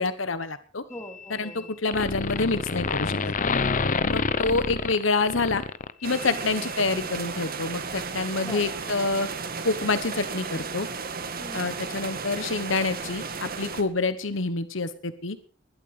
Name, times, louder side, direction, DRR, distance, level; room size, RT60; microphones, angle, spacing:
voice 1, 0.0-0.8 1.3-3.2 4.0-5.6 6.0-9.3 9.6-10.9 11.5-15.4, left 3 dB, 75° left, 12 dB, 1.3 m, -27 dB
sound 1, 0.9-1.6 1.9-6.3, left 4 dB, 40° left, 0.9 m, -27 dB
voice 2, 0.9-1.8 6.3-6.5 8.3-8.6 11.4-11.7, left 1 dB, 15° left, 5 dB, 3.3 m, -44 dB
sound 2, 6.0-13.8, right 5 dB, 50° right, 2.0 m, -34 dB
20.5 x 12.5 x 5.1 m, 0.39 s
head